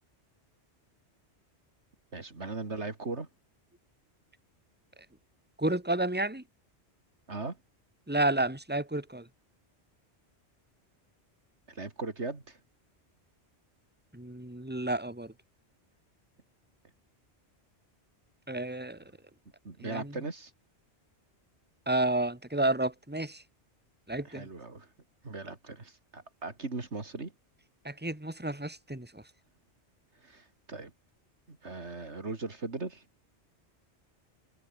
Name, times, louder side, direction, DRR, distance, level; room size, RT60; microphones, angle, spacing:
voice 1, 2.1-3.3 7.3-7.6 11.7-12.6 19.6-20.5 24.2-24.9 25.2-27.3 30.2-30.9 31.5-33.0, right 3 dB, 80° right, 3.3 m, -38 dB
voice 2, 5.6-6.4 8.1-9.3 14.1-15.3 18.5-19.0 19.8-20.1 21.9-23.4 24.1-24.5 27.8-29.2, right 2 dB, 10° right, 2.7 m, -31 dB
omnidirectional pair, 1.2 m